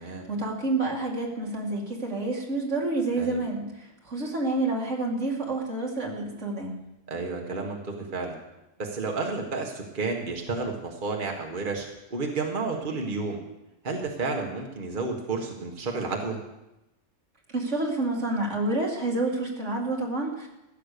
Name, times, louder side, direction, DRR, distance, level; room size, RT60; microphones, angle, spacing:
voice 1, 0.0-6.7 17.5-20.5, right 2 dB, 75° right, 0 dB, 2.6 m, -29 dB
voice 2, 7.1-8.4 8.8-13.4 13.8-16.4, right 3 dB, 45° right, 1 dB, 1.7 m, -31 dB
15.0 x 9.9 x 6.8 m, 0.96 s
omnidirectional pair, 1.2 m